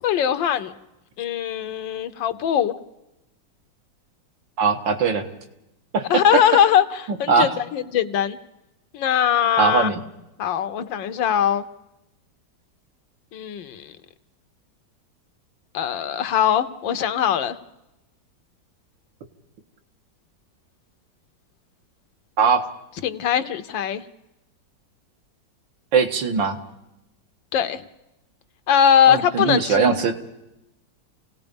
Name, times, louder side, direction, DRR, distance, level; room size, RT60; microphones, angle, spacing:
voice 1, 0.0-0.7 1.2-2.8 6.1-8.4 8.9-9.9 10.4-11.6 13.3-14.0 15.7-17.5 23.0-24.0 27.5-27.8 28.7-29.9, left 9 dB, 85° left, 11 dB, 1.7 m, -21 dB
voice 2, 4.6-5.3 5.9-6.2 7.3-7.5 9.6-10.0 22.4-22.7 25.9-26.6 29.1-30.1, right 5 dB, 80° right, 5 dB, 2.3 m, -20 dB
29.0 x 18.0 x 5.3 m, 0.91 s
omnidirectional pair, 2.0 m